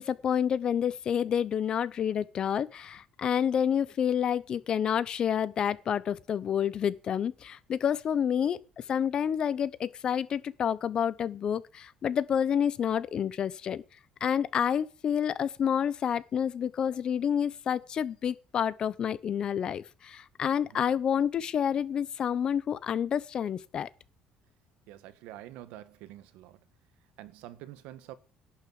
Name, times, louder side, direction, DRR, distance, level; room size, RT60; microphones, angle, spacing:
voice 1, 0.0-8.6 8.9-13.8 14.2-23.9, left 8 dB, 40° left, 0.9 m, -29 dB
voice 2, 24.9-26.6 27.2-28.2, right 14 dB, 85° right, 1.5 m, -46 dB
11.5 x 6.8 x 7.7 m
cardioid pair, 145°, 2 cm